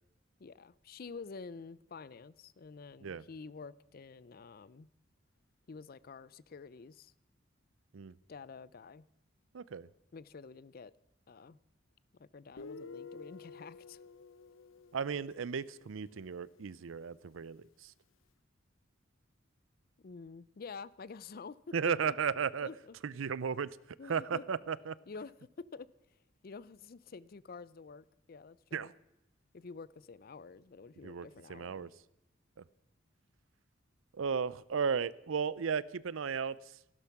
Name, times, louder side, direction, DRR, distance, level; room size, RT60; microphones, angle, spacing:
voice 1, 0.4-4.9 5.7-7.1 8.3-9.0 10.1-10.9 11.3-11.6 12.1-14.0 20.0-21.6 22.1-22.2 22.6-22.9 24.0-24.4 25.1-28.9 29.5-31.9, left 4 dB, 50° left, 20 dB, 0.5 m, -49 dB
voice 2, 9.5-9.9 14.9-17.9 21.7-22.7 23.0-23.8 24.1-25.0 28.7-28.9 31.0-31.9 32.6-32.7 34.1-36.8, right 6 dB, 85° right, 20 dB, 0.5 m, -35 dB
Guitar, 12.6-16.1, left 4 dB, 85° left, 0.7 m, -50 dB
15.5 x 12.0 x 5.9 m, 0.88 s
head